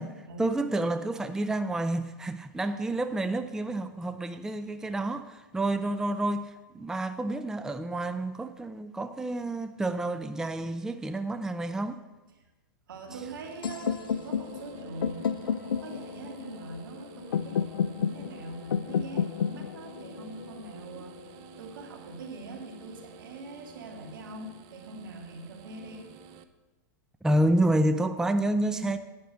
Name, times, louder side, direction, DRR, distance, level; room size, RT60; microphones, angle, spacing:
voice 1, 0.4-12.0 27.2-29.0, right 1 dB, 5° right, 10 dB, 0.4 m, -29 dB
voice 2, 12.9-21.3 21.6-26.1 28.7-28.9, right 2 dB, 75° right, 2 dB, 2.5 m, -43 dB
sound 1, 13.1-26.4, right 6 dB, 45° right, 0.8 m, -51 dB
sound 2, 13.6-21.6, left 7 dB, 90° left, 0.4 m, -32 dB
9.9 x 6.0 x 7.7 m, 1.1 s
hypercardioid pair, 115°, 11 cm